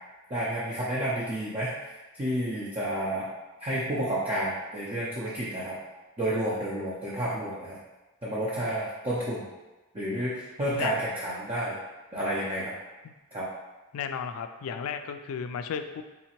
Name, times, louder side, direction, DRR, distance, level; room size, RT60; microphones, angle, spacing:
voice 1, 0.3-1.7 2.1-3.3 3.6-5.8 6.2-7.8 8.2-9.4 9.9-11.8 12.1-12.7 13.3-13.5, right 1 dB, 25° right, -8 dB, 0.6 m, -30 dB
voice 2, 13.9-16.0, left 7 dB, 65° left, 9 dB, 0.3 m, -34 dB
4.0 x 2.8 x 2.9 m, 1.1 s
head